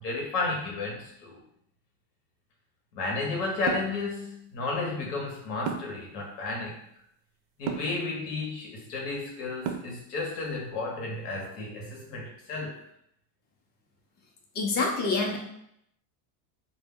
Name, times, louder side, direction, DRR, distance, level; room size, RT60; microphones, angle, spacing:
voice 1, 0.0-1.4 2.9-6.8 7.6-12.7, left 3 dB, 90° left, -1 dB, 1.0 m, -32 dB
sound 1, 3.7-4.0 5.7-6.0 7.7-8.0 9.6-10.0, right 7 dB, 50° right, 0.5 m, -32 dB
voice 2, 14.5-15.4, left 3 dB, 20° left, -1 dB, 0.4 m, -26 dB
2.1 x 2.0 x 3.5 m, 0.74 s
supercardioid pair, 105°, 47 cm